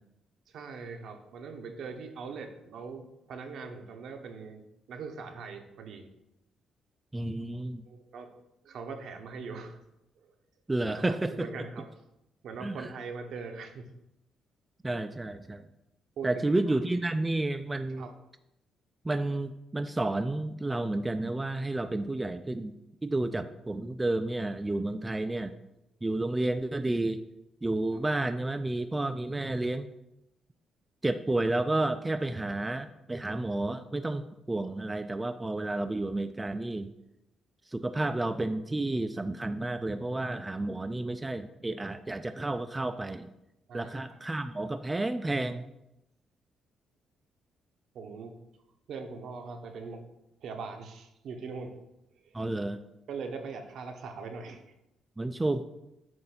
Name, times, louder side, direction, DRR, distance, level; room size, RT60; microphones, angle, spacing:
voice 1, 0.5-6.1 7.8-8.3 8.6-9.8 10.2-10.3 10.9-11.9 12.4-13.9 16.2-16.8 18.0-18.1 27.9-28.0 43.7-44.2 47.9-48.3 48.9-50.0 50.4-51.7 52.2-52.4 53.1-54.7, right 4 dB, 70° right, 5 dB, 0.8 m, -41 dB
voice 2, 7.1-7.8 10.7-11.5 12.6-12.9 14.8-15.6 16.2-18.1 19.0-22.7 23.0-25.5 26.0-27.2 27.6-29.9 31.0-36.9 37.7-43.3 43.7-45.6 52.3-52.8 55.2-55.6, right 2 dB, 15° right, 8 dB, 0.3 m, -31 dB
7.7 x 2.6 x 5.7 m, 0.88 s
cardioid pair, 90°, 0 cm